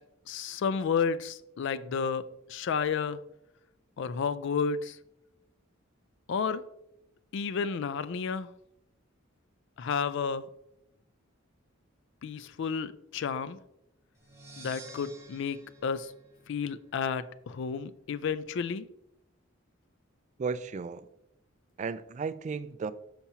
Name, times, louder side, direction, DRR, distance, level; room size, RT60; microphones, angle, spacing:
voice 1, 0.3-2.2 2.5-3.2 4.0-5.0 6.3-6.6 7.3-8.5 9.8-10.4 12.2-13.6 14.6-16.1 16.5-18.9, left 6 dB, 65° left, 0.4 m, -31 dB
sound 1, 14.2-17.0, right 3 dB, 15° right, 1.2 m, -51 dB
voice 2, 20.4-21.1 21.8-22.9, right 5 dB, 35° right, 0.3 m, -34 dB
6.9 x 5.8 x 2.8 m
head